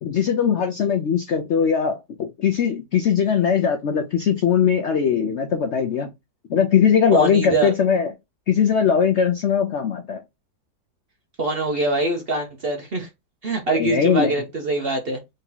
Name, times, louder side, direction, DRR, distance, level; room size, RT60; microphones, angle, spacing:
voice 1, 0.0-6.1 6.5-8.1 8.5-10.2 13.7-14.4, left 7 dB, 70° left, 0.6 m, -20 dB
voice 2, 7.1-7.7 11.4-13.1 13.4-15.2, right 2 dB, 50° right, 0.7 m, -23 dB
3.9 x 2.8 x 3.8 m
omnidirectional pair, 1.8 m